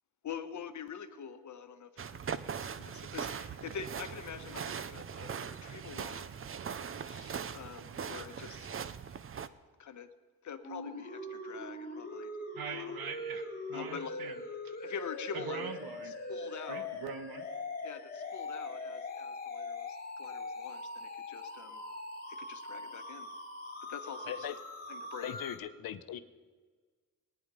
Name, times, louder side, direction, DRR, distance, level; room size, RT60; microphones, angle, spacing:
voice 1, 0.2-6.4 7.0-8.8 9.8-10.1 10.4-12.3 12.7-12.9 13.7-14.2 14.8-15.7 16.0-16.9 17.8-21.8 22.3-23.4 23.8-24.5 24.9-25.3, left 7 dB, 55° left, 9 dB, 1.1 m, -45 dB
sound 1, 2.0-9.5, right 7 dB, 40° right, 0.6 m, -40 dB
sound 2, 10.6-25.6, left 2 dB, 25° left, 3.0 m, -42 dB
voice 2, 12.5-14.3 14.6-14.7 15.3-16.1 16.7-17.5, right 6 dB, 80° right, 8 dB, 1.4 m, -42 dB
voice 3, 25.2-26.2, left 10 dB, 75° left, 11 dB, 0.9 m, -39 dB
18.5 x 9.6 x 5.5 m, 1.5 s
cardioid pair, 95°, 35 cm